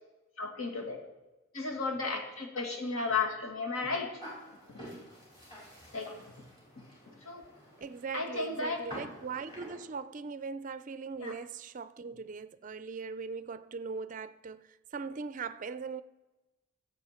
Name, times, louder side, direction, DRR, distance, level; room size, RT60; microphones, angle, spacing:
voice 1, 0.4-1.0 1.5-4.2 4.7-4.8 5.9-6.1 7.1-7.4 8.1-8.8 11.2-11.3, left 4 dB, 75° left, 2.1 m, -34 dB
sound 1, 4.2-9.8, equal, 25° left, 4.5 m, -48 dB
voice 2, 7.8-16.0, right 5 dB, 35° right, 0.4 m, -40 dB
16.0 x 7.7 x 4.4 m
head